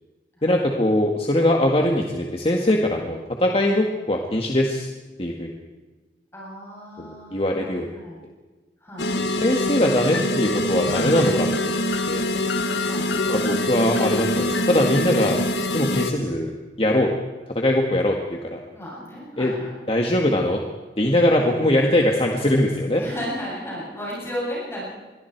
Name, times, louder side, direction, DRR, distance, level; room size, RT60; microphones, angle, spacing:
voice 1, 0.4-4.9 5.2-5.5 7.0-7.9 9.2-11.5 12.1-12.2 13.3-15.4 15.7-16.5 16.8-17.1 17.6-18.6 19.4-19.5 19.9-20.6 21.0-23.0, left 1 dB, 30° left, 1 dB, 1.9 m, -21 dB
voice 2, 6.3-8.2 8.8-9.1 12.8-13.1 18.7-19.8 23.0-24.8, equal, 15° left, -6 dB, 8.0 m, -34 dB
sound 1, 9.0-16.1, left 1 dB, 80° left, 1.7 m, -24 dB
27.0 x 22.0 x 4.7 m, 1.3 s
head